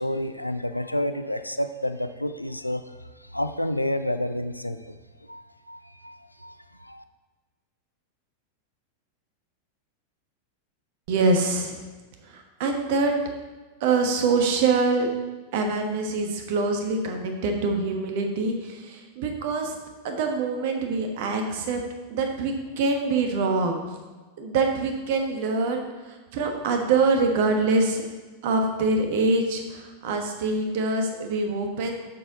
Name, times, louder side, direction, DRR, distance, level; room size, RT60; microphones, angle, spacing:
voice 1, 0.0-2.8 3.3-4.9 5.3-5.4 5.7-6.5 6.8-7.0, left 1 dB, 85° left, 10 dB, 0.4 m, -29 dB
voice 2, 11.1-11.8 12.3-13.1 13.8-15.1 15.5-19.8 20.0-21.8 22.1-23.8 24.4-28.0 28.4-31.9, right 3 dB, 50° right, 4 dB, 1.3 m, -25 dB
7.5 x 6.7 x 3.8 m, 1.3 s
figure-of-eight pair, 90°, 0 cm